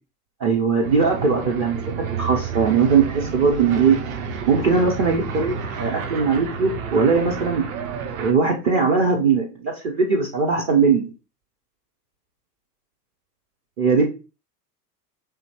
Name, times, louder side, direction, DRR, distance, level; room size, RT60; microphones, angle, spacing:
voice 1, 0.4-1.8 2.1-4.0 4.5-7.6 8.2-11.1 13.8-14.1, right 5 dB, 20° right, -1 dB, 0.4 m, -20 dB
sound 1, 0.8-8.3, right 6 dB, 55° right, 0.8 m, -30 dB
5.0 x 2.7 x 2.7 m, 0.31 s
figure-of-eight pair, 85°, 49 cm